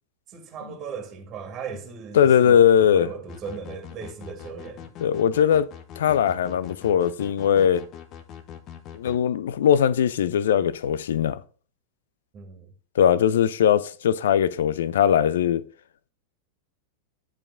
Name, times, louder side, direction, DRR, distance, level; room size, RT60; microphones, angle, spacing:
voice 1, 0.3-4.9 12.3-12.7, right 6 dB, 30° right, 1.9 m, -37 dB
voice 2, 2.1-3.1 5.0-5.7 6.0-7.8 8.9-11.4 13.0-15.6, left 9 dB, 60° left, 0.5 m, -20 dB
sound 1, 3.3-9.2, left 9 dB, 35° left, 1.0 m, -42 dB
10.5 x 5.1 x 3.5 m
figure-of-eight pair, 90°, 0 cm